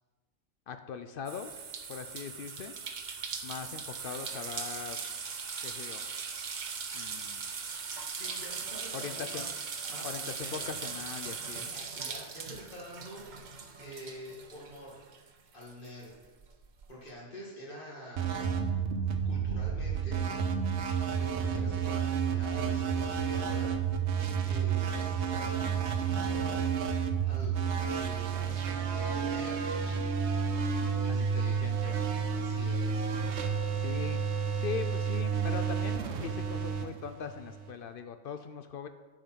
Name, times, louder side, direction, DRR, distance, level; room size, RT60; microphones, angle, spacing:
voice 1, 0.7-1.6 1.9-2.7 3.4-5.0 5.6-6.1 6.9-7.5 8.9-9.5 10.0-11.6 31.1-32.0 33.7-34.2 34.5-38.9, left 7 dB, 60° left, 9 dB, 0.6 m, -40 dB
sound 1, 1.3-15.3 15.6-16.8, right 5 dB, 45° right, 0.8 m, -40 dB
voice 2, 8.1-9.5 9.9-10.6 11.5-13.2 13.8-15.0 15.5-16.3 16.9-18.9 19.2-20.3 21.1-23.7 24.4-26.6 27.3-30.3 31.0-31.6 32.3-33.1, equal, 45° left, -4 dB, 2.4 m, -47 dB
sound 2, 18.2-37.7, right 6 dB, 70° right, 1.1 m, -31 dB
8.9 x 5.1 x 6.0 m, 1.3 s
omnidirectional pair, 1.3 m